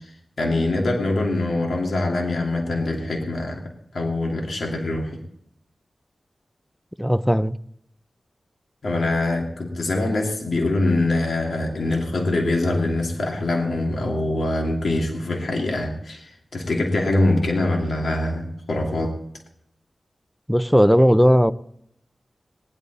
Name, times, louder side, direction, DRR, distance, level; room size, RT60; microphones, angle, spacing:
voice 1, 0.4-3.6 3.9-5.2 8.8-19.1, left 2 dB, 75° left, 2.6 m, -23 dB
voice 2, 7.0-7.6 20.5-21.5, equal, ahead, 0.5 m, -16 dB
19.5 x 11.0 x 4.1 m
wide cardioid pair, 95°, 0 cm